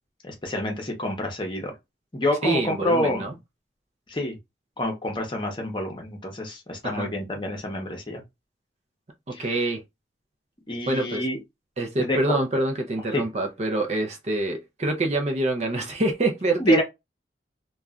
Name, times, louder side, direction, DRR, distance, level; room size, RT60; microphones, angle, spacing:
voice 1, 0.2-1.7 2.1-3.3 4.1-4.4 4.8-8.2 9.3-9.6 10.7-11.4 12.0-12.4 13.1-13.2 16.6-16.8, left 1 dB, 25° left, 0.8 m, -27 dB
voice 2, 2.4-3.3 6.8-7.1 9.3-9.8 10.9-11.2 11.8-16.8, right 2 dB, 35° right, 0.5 m, -26 dB
3.0 x 2.3 x 2.4 m
head